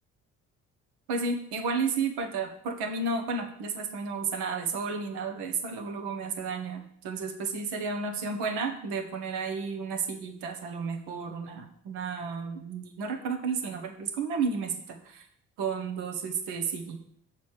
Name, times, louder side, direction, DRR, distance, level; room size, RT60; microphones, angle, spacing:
voice 1, 1.1-15.2 15.6-17.0, right 4 dB, 70° right, 5 dB, 1.3 m, -32 dB
6.9 x 5.1 x 6.5 m, 0.69 s
hypercardioid pair, 50°, 41 cm